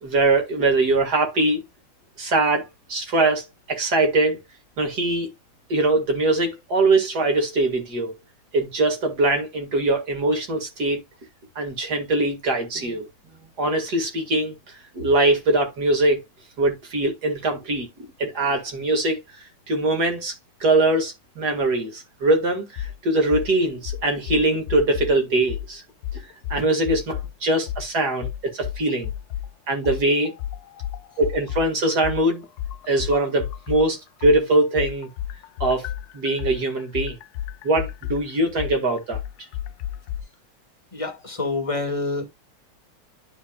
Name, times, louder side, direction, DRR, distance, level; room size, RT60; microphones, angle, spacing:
voice 1, 0.0-1.6 2.2-4.4 4.8-5.3 5.7-8.1 8.5-11.0 11.6-13.1 13.6-16.2 16.6-19.2 19.7-20.3 20.6-25.8 26.5-29.1 29.7-30.3 31.2-32.5 32.9-35.1 35.6-35.9 36.1-37.2 37.6-39.2, right 2 dB, 50° right, 2.4 m, -22 dB
sound 1, 22.8-22.9 23.3-23.5 23.8-25.1 25.5-25.7 26.0-27.3 27.7-27.8 28.2-29.5 29.8-33.8 34.2-40.2, left 11 dB, 80° left, 0.8 m, -31 dB
voice 2, 40.9-42.3, left 3 dB, 20° left, 1.3 m, -27 dB
12.0 x 4.5 x 2.3 m
omnidirectional pair, 2.3 m